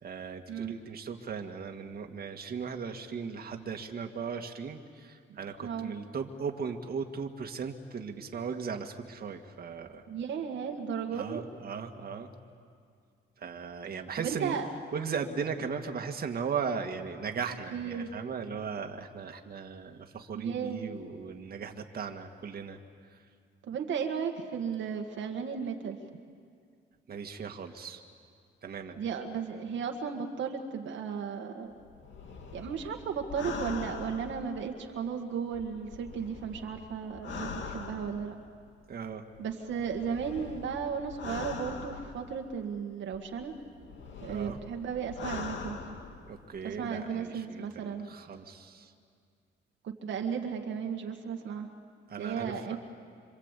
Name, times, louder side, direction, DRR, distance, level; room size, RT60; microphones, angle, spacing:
voice 1, 0.0-10.0 11.1-12.3 13.4-14.6 14.9-22.8 23.1-23.2 27.1-28.0 28.6-29.0 38.9-39.2 44.3-44.6 46.3-48.9 52.1-52.8, right 6 dB, 50° right, 4 dB, 2.0 m, -37 dB
voice 2, 5.3-5.9 10.1-11.4 14.2-14.7 17.7-18.1 20.3-20.9 23.7-26.2 29.0-31.7 32.5-38.4 39.4-43.5 44.2-45.8 46.6-48.1 49.8-51.7 52.2-52.8, right 6 dB, 70° right, 3 dB, 1.9 m, -35 dB
sound 1, 31.8-35.0 35.5-38.5 39.4-42.6 43.1-46.6 46.8-46.9, left 4 dB, 70° left, 2.8 m, -42 dB
26.5 x 26.0 x 8.4 m, 2.2 s
cardioid pair, 90°, 20 cm